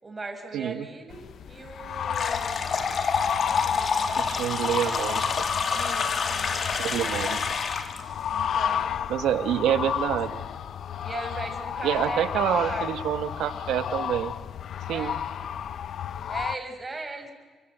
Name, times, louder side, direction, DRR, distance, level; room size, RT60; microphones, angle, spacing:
voice 1, 0.0-2.7 3.4-4.8 5.7-7.1 8.3-9.1 9.8-10.2 11.0-12.9 14.9-15.2 16.3-17.3, right 3 dB, 25° right, 5 dB, 5.7 m, -39 dB
voice 2, 0.5-0.9 4.2-5.2 6.8-7.4 9.1-10.4 11.8-14.3 14.9-15.2, right 10 dB, 85° right, 10 dB, 1.6 m, -27 dB
sound 1, 1.1-16.6, left 9 dB, 65° left, 0.9 m, -32 dB
sound 2, 2.1-8.0, left 5 dB, 50° left, 2.8 m, -28 dB
29.0 x 24.5 x 8.1 m, 1.4 s
cardioid pair, 90°, 0 cm